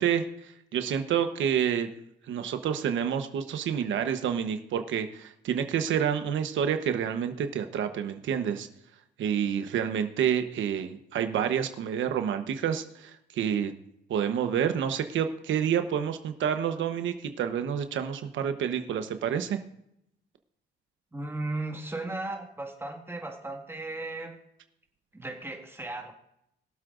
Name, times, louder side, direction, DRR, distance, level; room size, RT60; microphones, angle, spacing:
voice 1, 0.0-1.9 2.3-8.7 9.2-13.7 14.1-19.6, right 8 dB, 75° right, 8 dB, 1.1 m, -28 dB
voice 2, 21.1-24.4 25.1-26.1, right 2 dB, 10° right, 3 dB, 1.9 m, -36 dB
22.0 x 7.7 x 2.6 m, 0.78 s
cardioid pair, 90°, 20 cm